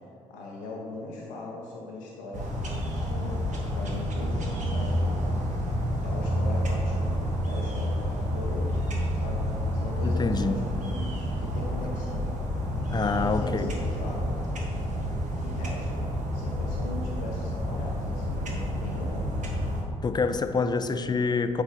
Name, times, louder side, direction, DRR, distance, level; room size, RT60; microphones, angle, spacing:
voice 1, 0.3-5.4 6.0-8.8 9.1-12.3 12.9-14.3 15.4-16.0 16.3-19.3, left 2 dB, 80° left, -3 dB, 0.8 m, -39 dB
sound 1, 2.3-19.8, equal, 50° right, 1.4 m, -29 dB
voice 2, 10.0-10.7 12.9-13.8 20.0-21.6, left 4 dB, 25° left, 10 dB, 0.5 m, -26 dB
8.1 x 5.0 x 4.2 m, 2.9 s
hypercardioid pair, 40°, 16 cm